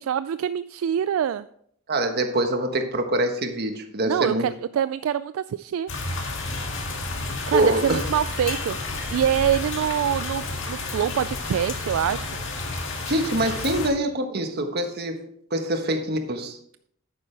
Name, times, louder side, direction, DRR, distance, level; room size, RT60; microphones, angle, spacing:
voice 1, 0.0-1.5 4.0-5.9 7.0-7.1 7.5-8.8 9.1-12.3, right 9 dB, 75° right, 14 dB, 0.3 m, -25 dB
voice 2, 1.9-4.5 7.5-8.0 13.1-15.2 15.5-16.6, right 1 dB, 50° right, 6 dB, 1.3 m, -24 dB
sound 1, 5.9-13.9, left 2 dB, 65° left, 1.9 m, -31 dB
10.5 x 8.9 x 3.3 m, 0.67 s
head